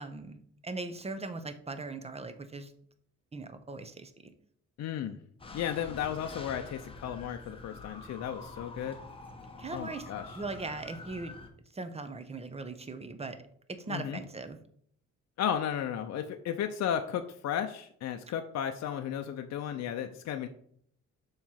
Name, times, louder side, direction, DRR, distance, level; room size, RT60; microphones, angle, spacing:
voice 1, 0.0-2.7 3.3-4.3 9.6-10.1 10.3-11.3 11.7-13.4 13.7-14.6, right 3 dB, 20° right, 9 dB, 0.8 m, -39 dB
voice 2, 4.8-5.2 5.5-9.0 9.7-10.4 13.9-14.2 15.4-20.5, left 9 dB, 60° left, 6 dB, 0.6 m, -34 dB
sound 1, 5.4-11.5, left 2 dB, 20° left, 1.0 m, -46 dB
7.0 x 3.2 x 5.7 m, 0.63 s
cardioid pair, 90°, 30 cm